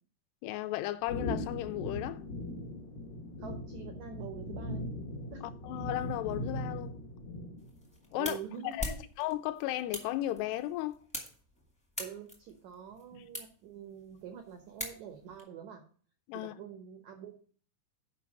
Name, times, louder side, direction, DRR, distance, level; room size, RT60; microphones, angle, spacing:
voice 1, 0.4-2.2 5.6-7.0 8.1-8.4 8.6-11.0 16.3-16.5, left 15 dB, 85° left, 2.7 m, -35 dB
sound 1, 1.1-7.8, left 1 dB, 70° left, 1.7 m, -39 dB
voice 2, 3.4-4.8 5.3-5.4 8.2-9.0 12.0-15.8 16.3-17.3, right 8 dB, 90° right, 1.6 m, -45 dB
sound 2, 7.6-15.4, left 1 dB, 5° left, 0.5 m, -44 dB
6.9 x 5.2 x 7.0 m
omnidirectional pair, 4.7 m